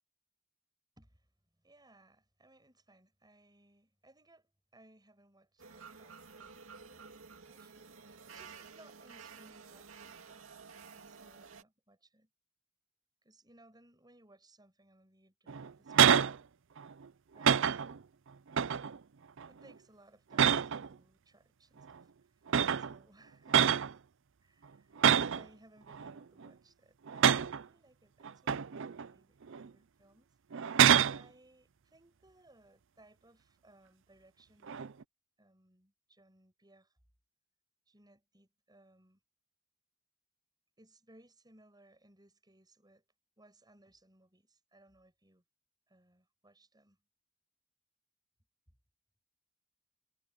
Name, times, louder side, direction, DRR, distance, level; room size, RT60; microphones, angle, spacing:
voice 1, 1.0-1.3 1.6-7.1 7.5-12.3 13.2-16.4 19.5-23.8 24.4-24.9 25.3-30.3 31.0-34.9 35.4-37.0 37.9-39.2 40.8-43.0 43.4-45.4 45.9-47.0, right 1 dB, 20° right, 7.3 m, -64 dB
sound 1, 5.6-11.6, right 5 dB, 80° right, 2.4 m, -52 dB
sound 2, 15.5-16.4 16.8-17.0 17.4-18.0 18.5-19.0 19.4-19.7 20.3-20.9 21.9-22.0 22.5-22.9 23.5-23.9 25.0-25.4 25.9-26.5 27.1-27.6 28.2-29.1 29.5-29.7 30.5-31.2 34.7-35.0, right 8 dB, 65° right, 0.5 m, -27 dB
head